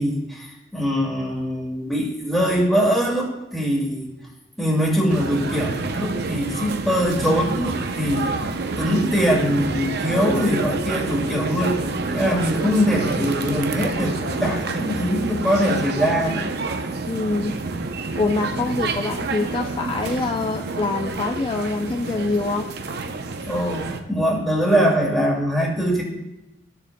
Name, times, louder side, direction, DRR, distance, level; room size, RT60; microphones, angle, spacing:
voice 1, 0.0-4.1 4.6-11.8 12.1-16.5 23.4-26.0, equal, ahead, -3 dB, 2.1 m, -22 dB
sound 1, 5.1-24.0, right 3 dB, 60° right, 0.7 m, -28 dB
voice 2, 17.1-17.6 18.1-22.7, left 3 dB, 25° left, 3 dB, 0.4 m, -25 dB
14.0 x 7.1 x 2.2 m, 0.95 s
head